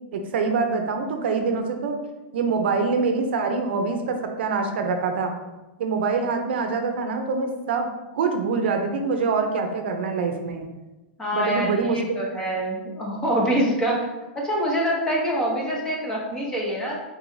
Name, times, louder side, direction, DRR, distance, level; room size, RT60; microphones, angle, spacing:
voice 1, 0.1-2.0 2.3-5.3 5.8-10.7 11.3-12.2, right 4 dB, 70° right, 5 dB, 0.6 m, -25 dB
voice 2, 11.2-14.0 14.3-17.0, equal, 10° left, -3 dB, 0.9 m, -25 dB
4.6 x 4.0 x 2.6 m, 1.1 s
supercardioid pair, 155°, 6 cm